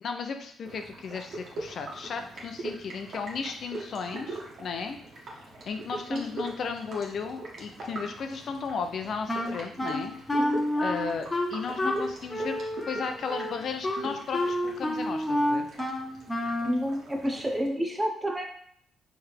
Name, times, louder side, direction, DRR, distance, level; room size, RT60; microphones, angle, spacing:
voice 1, 0.0-5.0 5.3-10.1 10.8-12.5 12.9-15.7, left 5 dB, 60° left, 6 dB, 0.5 m, -35 dB
sound 1, 0.6-17.7, right 2 dB, 55° right, 1.4 m, -42 dB
Wind instrument woodwind instrument, 9.3-16.8, left 1 dB, 15° left, 0.9 m, -29 dB
voice 2, 16.6-18.4, equal, 15° right, 2 dB, 0.9 m, -30 dB
4.5 x 3.3 x 3.4 m, 0.66 s
cardioid pair, 90°, 0 cm